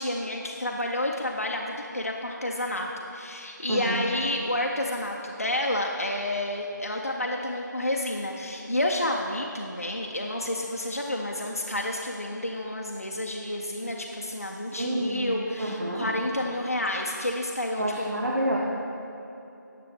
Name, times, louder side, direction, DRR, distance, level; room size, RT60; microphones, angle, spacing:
voice 1, 0.0-17.8, left 1 dB, 45° left, 0 dB, 0.5 m, -30 dB
voice 2, 3.7-4.0 14.7-15.3 15.6-16.1 17.8-18.6, right 1 dB, 60° right, -3 dB, 0.9 m, -28 dB
9.5 x 6.8 x 3.5 m, 2.9 s
figure-of-eight pair, 180°, 11 cm